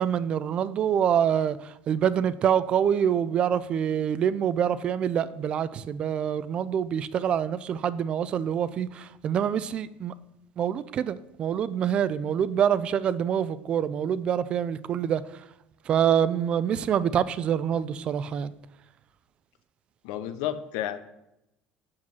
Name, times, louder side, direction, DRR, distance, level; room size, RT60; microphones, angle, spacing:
voice 1, 0.0-10.1 10.6-15.2 15.9-18.5, right 8 dB, 30° right, 16 dB, 0.4 m, -26 dB
voice 2, 20.0-21.0, left 11 dB, 80° left, 11 dB, 0.8 m, -31 dB
7.3 x 7.3 x 6.1 m, 0.86 s
cardioid pair, 165°, 3 cm